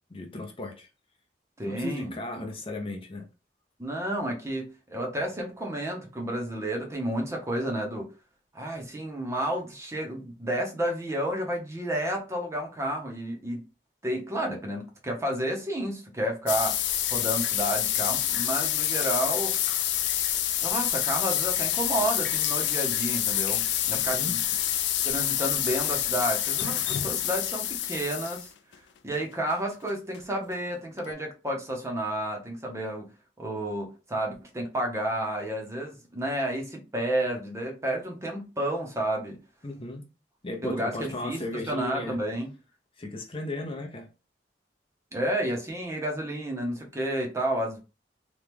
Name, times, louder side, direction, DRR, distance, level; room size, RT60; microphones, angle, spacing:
voice 1, 0.1-0.9 1.6-3.3 23.9-24.3 39.6-40.0 40.4-42.2 43.0-44.1, left 2 dB, 30° left, 0.6 m, -36 dB
voice 2, 1.6-2.4 3.8-8.1 8.5-13.6 14.0-16.8 17.1-19.5 20.6-24.4 25.0-28.5 29.0-33.1 33.4-39.4 40.6-42.5 45.1-47.8, right 1 dB, 15° right, 0.8 m, -31 dB
sound 1, 16.5-28.5 28.7-28.8 29.1-29.2 29.5-29.6 29.9-30.0 30.1-30.2 30.5-30.6 31.0-31.1, left 11 dB, 80° left, 0.4 m, -27 dB
2.9 x 2.4 x 3.4 m
head